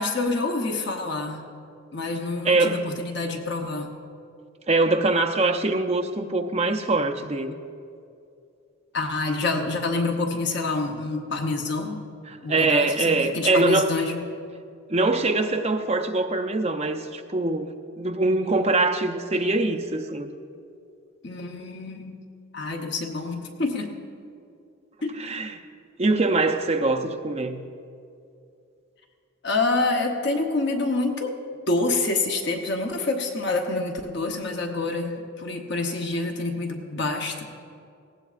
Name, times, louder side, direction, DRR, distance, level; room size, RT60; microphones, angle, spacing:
voice 1, 0.0-1.4 1.9-3.9 8.9-12.0 12.4-14.3 21.2-22.2 22.5-23.9 25.0-25.1 29.4-31.4 31.7-37.4, left 3 dB, 55° left, 2 dB, 0.9 m, -27 dB
voice 2, 2.4-2.8 4.7-7.5 12.3-13.9 14.9-20.3 25.2-25.6 26.0-27.6, right 2 dB, 30° right, 5 dB, 0.6 m, -23 dB
18.5 x 16.5 x 2.5 m, 2.5 s
head